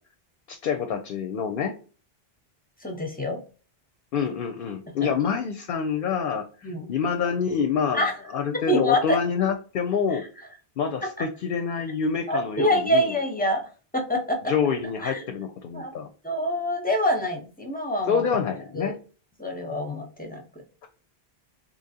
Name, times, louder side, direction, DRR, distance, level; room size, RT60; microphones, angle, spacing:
voice 1, 0.5-1.8 4.1-8.1 8.3-10.2 10.8-13.2 14.5-16.1 18.1-19.0, left 6 dB, 65° left, 6 dB, 0.7 m, -27 dB
voice 2, 2.8-3.4 6.6-6.9 7.9-8.1 8.7-9.2 10.1-10.2 12.3-13.6 13.9-14.4 15.0-15.2 15.7-15.9 16.2-18.2 18.7-18.9 19.4-20.4, equal, 10° left, 2 dB, 0.7 m, -25 dB
3.8 x 2.8 x 2.7 m, 0.37 s
omnidirectional pair, 1.0 m